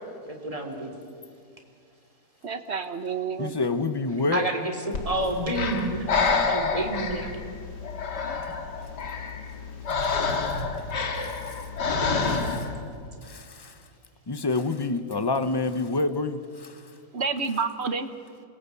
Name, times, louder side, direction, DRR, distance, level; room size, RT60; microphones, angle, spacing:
voice 1, 0.2-0.9 4.3-7.3, right 1 dB, 20° right, 3.4 m, -29 dB
voice 2, 2.4-3.5 17.1-18.1, right 5 dB, 40° right, 1.3 m, -29 dB
voice 3, 3.4-4.5 10.5-10.6 11.2-11.6 12.3-12.7 13.2-13.7 14.3-16.8, left 3 dB, 20° left, 0.6 m, -28 dB
Breathing, 4.9-12.8, left 4 dB, 75° left, 2.5 m, -28 dB
28.0 x 21.0 x 8.3 m
omnidirectional pair, 1.8 m